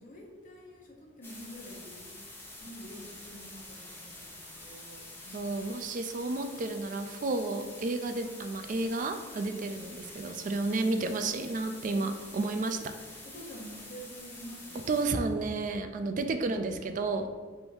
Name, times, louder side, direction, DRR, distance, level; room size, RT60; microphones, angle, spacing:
voice 1, 0.0-2.2 2.6-5.5 9.5-9.8 13.2-14.9, equal, 45° left, -1 dB, 0.8 m, -48 dB
sound 1, 1.2-15.1, left 1 dB, 10° left, 0.6 m, -47 dB
voice 2, 5.3-9.9 10.1-12.9 14.9-17.3, right 3 dB, 45° right, 7 dB, 0.3 m, -31 dB
3.5 x 2.6 x 4.5 m, 1.4 s
head